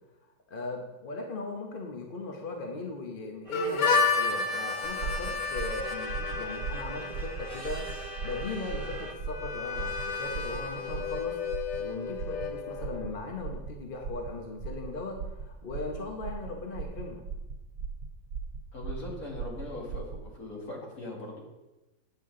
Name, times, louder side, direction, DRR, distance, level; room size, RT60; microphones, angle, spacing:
voice 1, 0.5-7.9 8.2-11.4 11.8-17.2, left 3 dB, 40° left, 2 dB, 1.0 m, -38 dB
sound 1, 3.4-9.1, right 2 dB, 25° right, 0.8 m, -44 dB
Harmonica, 3.5-13.1, left 4 dB, 80° left, 1.5 m, -32 dB
sound 2, 4.8-20.3, right 5 dB, 80° right, 1.4 m, -38 dB
voice 2, 18.7-21.4, left 1 dB, 60° left, -3 dB, 2.9 m, -40 dB
8.7 x 8.3 x 3.8 m, 1.0 s
omnidirectional pair, 1.8 m